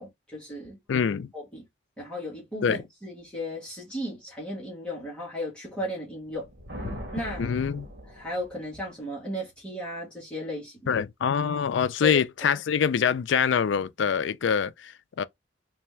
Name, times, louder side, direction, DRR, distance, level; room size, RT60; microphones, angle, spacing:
voice 1, 0.0-0.8 1.3-1.6 2.0-6.5 7.1-7.4 8.1-11.0 12.0-12.1 12.4-12.6, left 1 dB, 5° left, 1.6 m, -35 dB
voice 2, 0.9-1.3 2.6-2.8 7.4-7.9 10.9-15.2, left 7 dB, 75° left, 0.4 m, -25 dB
sound 1, 6.2-8.8, equal, 70° right, 1.8 m, -40 dB
3.4 x 3.3 x 3.1 m
head